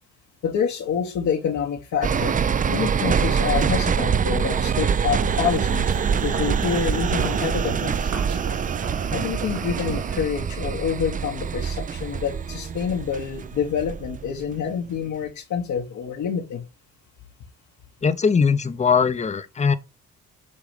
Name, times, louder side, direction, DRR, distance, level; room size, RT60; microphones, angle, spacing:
voice 1, 0.4-2.4 2.7-5.9 6.2-8.1 9.1-16.6, left 7 dB, 70° left, 1.3 m, -27 dB
sound 1, 2.0-14.6 15.0-15.1, right 7 dB, 25° right, 0.4 m, -25 dB
sound 2, 5.1-10.2, right 7 dB, 75° right, 1.9 m, -34 dB
voice 2, 18.0-19.7, left 5 dB, 25° left, 0.7 m, -20 dB
8.4 x 3.0 x 5.1 m
cardioid pair, 90°, 30 cm